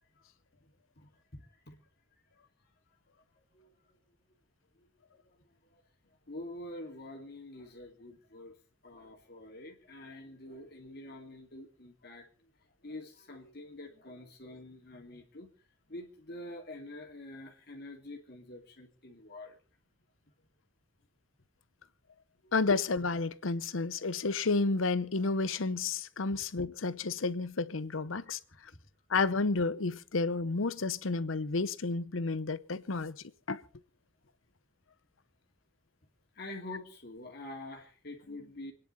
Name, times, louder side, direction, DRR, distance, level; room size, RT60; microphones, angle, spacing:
voice 1, 1.0-1.8 3.4-4.0 4.8-5.8 6.3-8.5 8.8-12.5 12.8-15.5 15.9-19.6 22.4-22.5 36.3-38.7, left 1 dB, 55° left, 2.5 m, -47 dB
voice 2, 22.5-28.4 29.1-33.2 33.5-33.6, left 3 dB, 85° left, 0.8 m, -31 dB
27.0 x 10.0 x 4.1 m
head